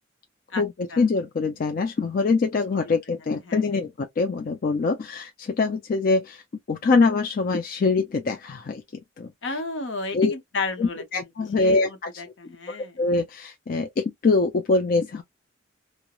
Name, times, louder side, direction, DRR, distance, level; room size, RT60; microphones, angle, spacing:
voice 1, 0.6-6.4 6.7-8.8 9.2-9.3 10.1-10.3 10.8-12.1 12.7-15.2, left 3 dB, 50° left, 0.4 m, -24 dB
voice 2, 9.4-11.3 11.6-13.0, left 3 dB, 75° left, 0.8 m, -33 dB
2.9 x 2.0 x 2.3 m
head